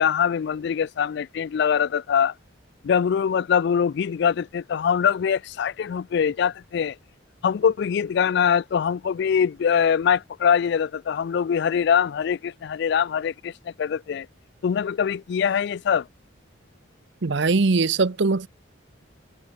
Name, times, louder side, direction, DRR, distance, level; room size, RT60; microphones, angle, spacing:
voice 1, 0.0-2.3 2.8-7.0 7.4-13.5 13.8-14.3 14.6-16.1, left 7 dB, 55° left, 0.3 m, -23 dB
voice 2, 17.2-18.5, right 3 dB, 60° right, 0.8 m, -21 dB
head